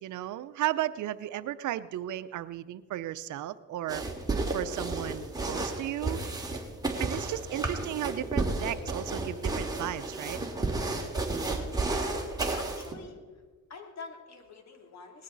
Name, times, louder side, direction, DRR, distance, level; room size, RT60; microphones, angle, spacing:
voice 1, 0.0-4.0 4.5-6.2 7.0-10.4, right 13 dB, 75° right, 14 dB, 0.7 m, -34 dB
sound 1, 3.9-12.9, right 2 dB, 15° right, 2.6 m, -32 dB
voice 2, 11.8-12.3 12.5-13.2 13.7-15.2, left 4 dB, 60° left, 3 dB, 3.1 m, -45 dB
19.5 x 15.0 x 4.0 m, 1.4 s
cardioid pair, 90°, 30 cm